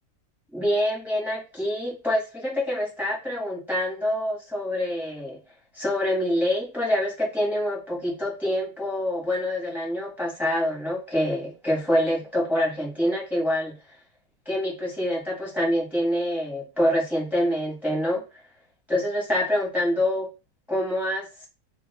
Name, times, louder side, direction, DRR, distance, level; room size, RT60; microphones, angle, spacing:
voice 1, 0.5-5.4 5.7-13.7 14.5-18.2 18.9-20.3 20.7-21.5, left 1 dB, ahead, -3 dB, 1.0 m, -26 dB
2.8 x 2.8 x 3.4 m, 0.29 s
omnidirectional pair, 2.2 m